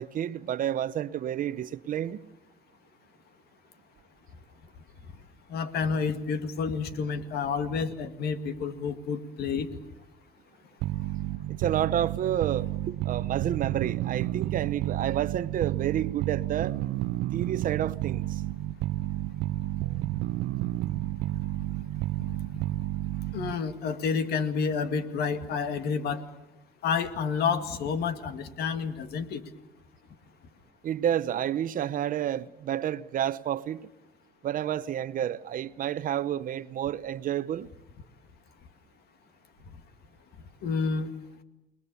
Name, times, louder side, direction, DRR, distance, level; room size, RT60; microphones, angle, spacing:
voice 1, 0.0-2.3 11.5-16.8 17.3-18.4 30.8-33.9 34.4-37.7, right 10 dB, 55° right, 0.9 m, -30 dB
voice 2, 5.5-9.7 22.3-22.6 23.3-26.2 26.8-29.4 40.6-41.1, left 5 dB, 70° left, 2.2 m, -29 dB
sound 1, 10.8-23.7, right 16 dB, 85° right, 0.8 m, -31 dB
29.0 x 20.0 x 7.0 m
cardioid pair, 110°, 17 cm